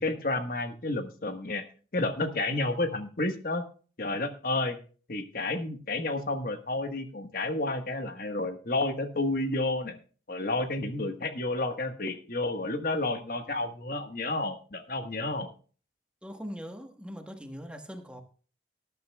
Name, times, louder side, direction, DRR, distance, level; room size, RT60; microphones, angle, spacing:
voice 1, 0.0-1.6 1.9-3.6 4.0-4.8 5.1-10.0 10.3-15.5, left 2 dB, 55° left, 1.3 m, -31 dB
voice 2, 16.2-18.2, equal, 5° right, 1.2 m, -41 dB
19.5 x 11.0 x 2.2 m
head